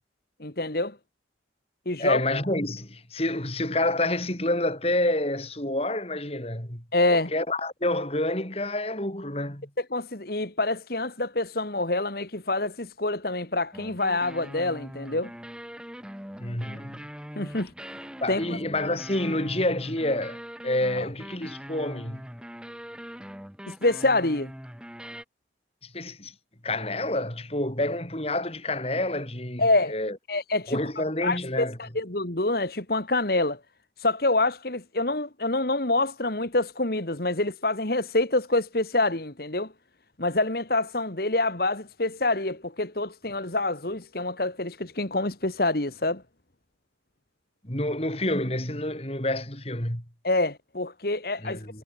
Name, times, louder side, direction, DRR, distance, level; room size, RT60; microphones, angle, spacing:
voice 1, 0.4-1.0 1.9-2.2 6.9-7.3 9.9-15.3 17.4-17.7 18.3-18.4 23.7-24.5 29.6-29.9 30.3-30.8 31.2-33.6 34.0-39.7 40.2-46.2 50.2-51.8, left 2 dB, 55° left, 2.3 m, -26 dB
voice 2, 2.0-6.8 7.1-9.7 16.4-17.1 18.2-22.2 25.8-26.3 26.6-30.2 30.7-31.8 47.6-50.0 51.4-51.8, left 1 dB, 35° left, 5.8 m, -28 dB
sound 1, 13.7-25.2, equal, 5° right, 4.6 m, -42 dB
head